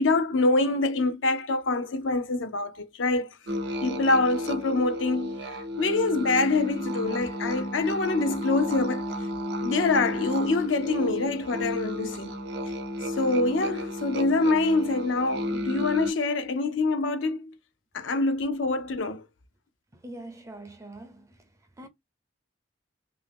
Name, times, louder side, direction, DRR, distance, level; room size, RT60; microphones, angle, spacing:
voice 1, 0.0-3.3 3.8-9.0 9.6-12.4 13.1-17.5 17.9-19.2, left 3 dB, 75° left, 0.5 m, -25 dB
sound 1, 3.5-16.1, left 1 dB, 60° right, 0.7 m, -33 dB
voice 2, 19.9-21.5 21.8-21.9, right 1 dB, 15° right, 0.5 m, -43 dB
2.8 x 2.6 x 3.3 m
head